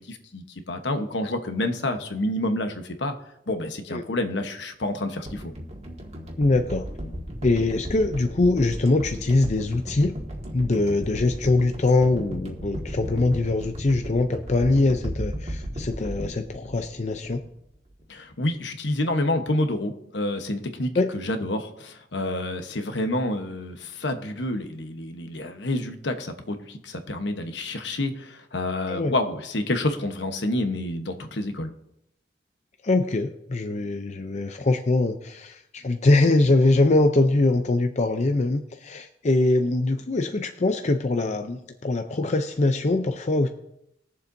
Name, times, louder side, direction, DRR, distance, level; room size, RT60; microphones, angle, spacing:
voice 1, 0.0-3.1 3.5-5.5 18.1-31.7, left 1 dB, 70° left, 7 dB, 1.1 m, -28 dB
sound 1, 5.3-17.6 17.9-18.0, equal, 35° right, 1.8 m, -35 dB
voice 2, 6.4-6.9 7.4-10.1 10.5-17.4 21.0-21.1 28.9-29.1 32.8-43.5, left 2 dB, 40° left, 6 dB, 0.6 m, -23 dB
21.5 x 7.3 x 2.7 m, 0.79 s
head